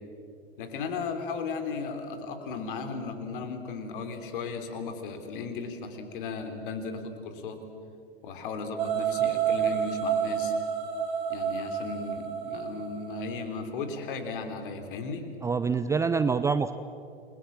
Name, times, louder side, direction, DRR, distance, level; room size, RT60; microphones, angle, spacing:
voice 1, 0.6-7.6 8.2-10.5 11.3-15.3, left 4 dB, 55° left, 7 dB, 3.6 m, -36 dB
sound 1, 8.8-13.8, right 8 dB, 45° right, 5.0 m, -29 dB
voice 2, 15.4-16.7, right 5 dB, 10° right, 12 dB, 0.5 m, -25 dB
29.0 x 22.0 x 7.3 m, 2.6 s
figure-of-eight pair, 100°, 32 cm